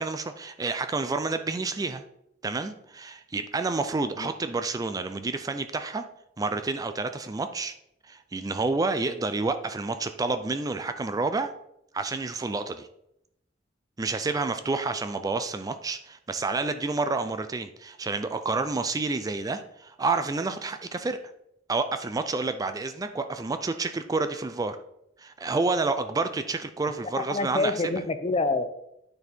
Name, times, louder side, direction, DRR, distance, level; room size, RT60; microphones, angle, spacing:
voice 1, 0.0-2.0 2.4-6.0 6.4-7.7 8.0-11.5 11.9-12.9 14.0-21.2 21.7-24.8 25.2-27.7, right 3 dB, 20° right, 9 dB, 0.3 m, -29 dB
voice 2, 27.1-28.7, left 3 dB, 35° left, 10 dB, 0.6 m, -27 dB
9.6 x 4.2 x 4.4 m, 0.79 s
head